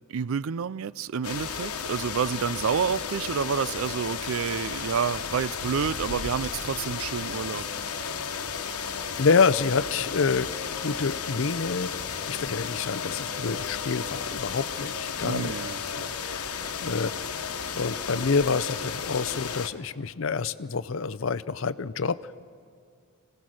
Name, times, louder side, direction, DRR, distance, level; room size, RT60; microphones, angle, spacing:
voice 1, 0.1-7.6 15.2-15.8, right 6 dB, 70° right, 0.4 m, -29 dB
sound 1, 1.2-19.7, left 6 dB, 90° left, 1.2 m, -33 dB
voice 2, 8.7-10.5 10.8-11.9 12.3-15.6 15.9-17.1 17.8-22.4, left 5 dB, 60° left, 0.6 m, -27 dB
25.5 x 18.0 x 6.4 m
head